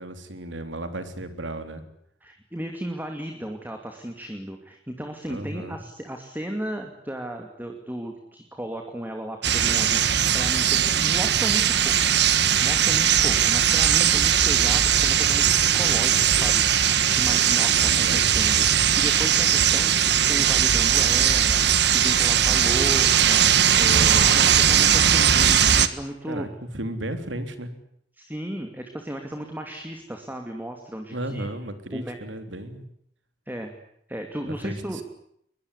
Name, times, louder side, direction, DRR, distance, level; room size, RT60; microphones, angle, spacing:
voice 1, 0.0-1.8 5.3-5.8 17.7-18.3 26.3-27.7 31.1-32.8 34.5-35.0, right 1 dB, 85° right, 9 dB, 3.5 m, -34 dB
voice 2, 2.2-12.1 12.6-26.5 28.1-31.5 31.9-32.2 33.5-33.7 34.1-35.0, right 1 dB, 10° right, 4 dB, 2.6 m, -35 dB
sound 1, 9.4-25.9, right 9 dB, 60° right, 1.6 m, -19 dB
22.5 x 22.0 x 9.9 m, 0.71 s
head